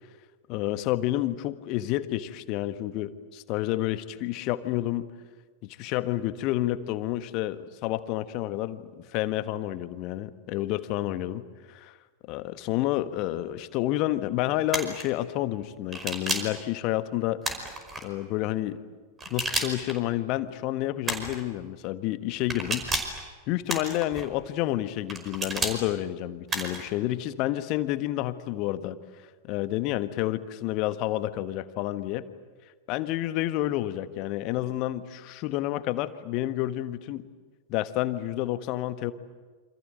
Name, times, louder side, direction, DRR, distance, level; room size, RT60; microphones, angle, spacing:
voice 1, 0.5-5.1 5.6-11.4 11.7-12.0 12.3-17.4 18.0-18.8 19.3-22.9 23.5-29.0 29.5-32.3 32.9-37.3 37.7-39.1, left 15 dB, 40° left, 11 dB, 1.4 m, -29 dB
sound 1, 14.7-15.0 15.9-16.6 17.4-18.0 19.2-19.9 21.0-21.4 22.5-23.2 23.7-24.2 25.1-25.8 26.5-26.9, right 2 dB, 20° right, 5.2 m, -31 dB
28.0 x 26.5 x 8.0 m, 1.4 s
figure-of-eight pair, 90°, 0 cm